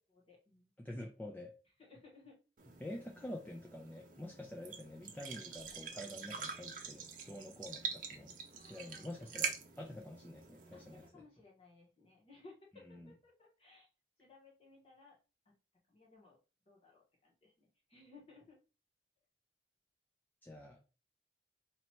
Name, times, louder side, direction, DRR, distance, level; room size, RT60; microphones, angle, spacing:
voice 1, 0.3-0.7 1.8-2.4 8.5-9.3 10.7-12.5 13.0-13.9 14.2-15.2 15.9-16.4 16.7-18.6, left 3 dB, 35° left, -3 dB, 1.5 m, -61 dB
voice 2, 0.8-1.5 2.8-8.3 8.6-11.2 12.7-13.1 20.4-20.8, left 1 dB, 10° left, 1 dB, 0.5 m, -48 dB
sound 1, 2.6-11.1, right 6 dB, 50° right, 0.7 m, -45 dB
3.0 x 2.9 x 4.3 m, 0.33 s
head